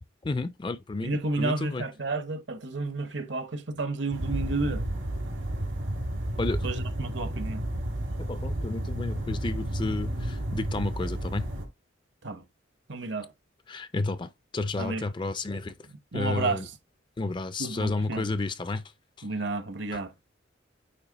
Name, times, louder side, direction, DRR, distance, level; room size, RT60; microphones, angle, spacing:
voice 1, 0.2-1.8 6.4-6.6 8.3-11.5 13.7-15.7 16.1-16.7 17.2-18.8 19.9-20.0, left 3 dB, 25° left, 0.4 m, -31 dB
voice 2, 1.0-4.8 6.6-7.7 12.2-12.4 12.9-13.3 14.8-15.1 15.9-16.8 17.6-18.3 19.2-20.1, right 3 dB, 65° right, 1.0 m, -31 dB
sound 1, 4.1-11.6, right 1 dB, 85° right, 3.6 m, -32 dB
8.7 x 2.9 x 3.9 m
head